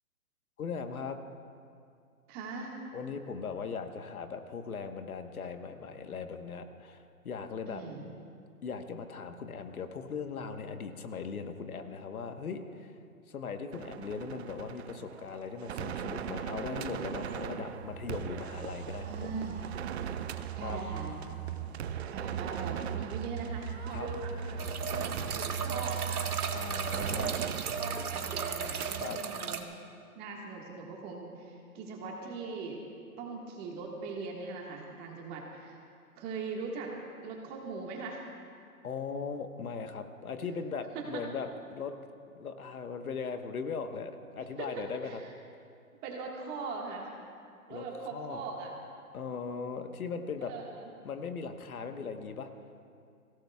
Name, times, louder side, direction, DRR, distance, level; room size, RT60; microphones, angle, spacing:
voice 1, 0.6-1.2 2.9-7.8 8.6-12.9 13.3-19.4 20.6-20.8 23.9-24.1 26.5-27.4 29.0-29.2 38.8-41.9 42.3-45.2 47.7-47.8 48.1-48.4 49.1-50.5 51.0-52.5, left 5 dB, 70° left, 7 dB, 1.3 m, -39 dB
voice 2, 2.3-2.8 7.7-8.0 19.0-19.6 20.5-21.2 22.1-24.6 25.3-26.6 27.1-27.4 27.8-29.7 30.1-32.8 33.2-35.8 36.2-36.9 37.2-38.3 40.9-41.2 44.6-45.2 46.0-47.1 47.7-48.7 50.4-50.9, right 4 dB, 20° right, 0 dB, 1.7 m, -40 dB
sound 1, 13.7-29.0, right 8 dB, 45° right, 0.7 m, -38 dB
sound 2, 24.6-29.6, right 6 dB, 80° right, 1.3 m, -36 dB
25.0 x 17.0 x 2.4 m, 2.4 s
hypercardioid pair, 140°, 44 cm